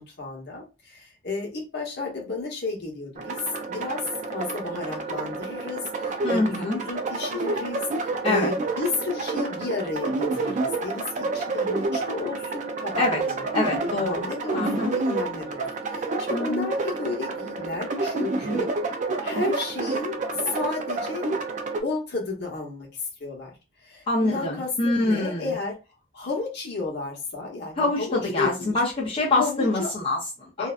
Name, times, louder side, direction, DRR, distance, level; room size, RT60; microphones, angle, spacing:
voice 1, 0.0-3.4 3.7-18.7 19.2-21.3 21.8-23.5 23.8-25.8 26.1-28.8 29.3-29.9 30.6-30.7, left 3 dB, 60° left, 0 dB, 0.9 m, -32 dB
sound 1, 3.2-21.8, right 3 dB, 40° right, 0.4 m, -29 dB
voice 2, 6.2-6.8 8.2-8.5 13.0-13.2 13.5-14.2 14.5-14.9 16.3-16.7 24.1-25.6 27.8-30.7, left 2 dB, 30° left, -5 dB, 0.6 m, -25 dB
2.6 x 2.2 x 2.4 m, 0.29 s
head